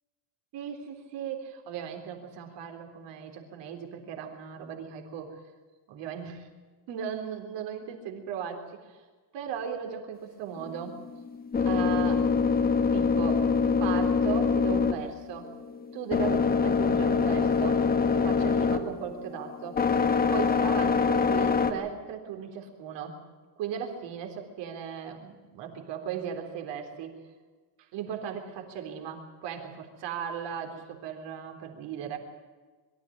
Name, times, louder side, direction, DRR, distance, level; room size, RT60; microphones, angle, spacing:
voice 1, 0.5-5.4 5.9-6.5 6.9-9.0 9.3-11.0 11.6-12.3 12.9-13.4 13.8-15.5 15.9-17.9 18.1-19.9 20.3-23.2 23.6-27.2 27.8-32.2, right 8 dB, 60° right, 4 dB, 3.8 m, -37 dB
sound 1, 10.6-21.7, left 5 dB, 20° left, 1.2 m, -25 dB
23.0 x 14.0 x 8.8 m, 1.4 s
cardioid pair, 180°, 47 cm